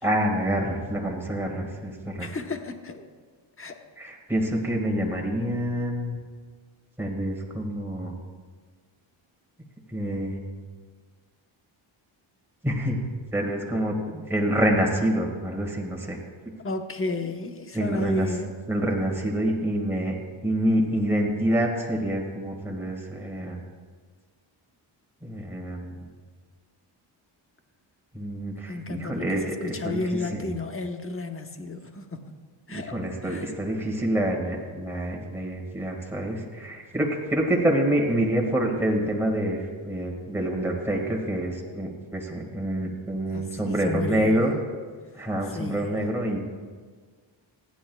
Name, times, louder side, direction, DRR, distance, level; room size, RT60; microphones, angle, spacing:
voice 1, 0.0-2.3 4.0-6.2 7.0-8.1 9.9-10.4 12.6-13.0 13.3-16.2 17.7-18.3 18.7-20.2 20.4-23.6 25.2-26.1 28.1-30.0 30.3-30.5 32.7-44.5 45.1-46.4, right 1 dB, 5° right, -1 dB, 1.9 m, -27 dB
voice 2, 2.2-3.1 3.6-3.8 16.6-18.5 28.7-32.3 32.7-33.5 43.3-44.4 45.5-45.9, left 2 dB, 25° left, 5 dB, 1.1 m, -33 dB
29.0 x 10.0 x 2.3 m, 1.5 s
wide cardioid pair, 125°, 49 cm